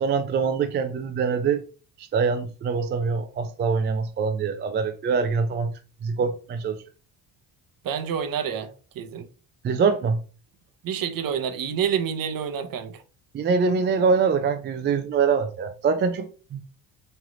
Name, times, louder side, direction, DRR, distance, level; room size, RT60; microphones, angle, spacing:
voice 1, 0.0-1.6 2.0-5.7 6.0-6.8 9.6-10.2 13.3-16.6, right 5 dB, 25° right, 0.4 m, -24 dB
voice 2, 7.8-9.3 10.8-13.0, right 8 dB, 50° right, 0.8 m, -28 dB
3.2 x 2.9 x 3.7 m
supercardioid pair, 75°, 43 cm